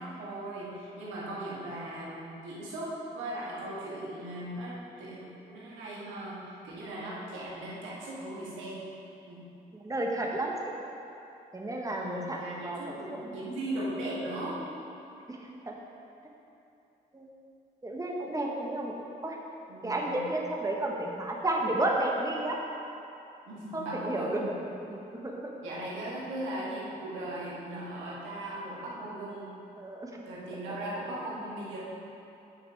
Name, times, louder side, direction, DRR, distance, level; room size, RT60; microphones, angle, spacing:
voice 1, 0.0-6.4 6.6-8.8 9.3-9.4 11.9-14.7 19.7-20.2 23.5-24.6 25.6-29.5 30.2-31.8, right 1 dB, 80° right, -7 dB, 1.9 m, -38 dB
voice 2, 9.8-10.5 11.5-12.8 15.3-15.7 17.1-17.3 17.8-18.9 19.2-19.4 19.8-22.6 23.7-24.5 24.9-25.4 29.8-30.2, right 1 dB, 15° right, -1 dB, 1.4 m, -32 dB
9.4 x 5.9 x 4.6 m, 2.8 s
hypercardioid pair, 45°, 20 cm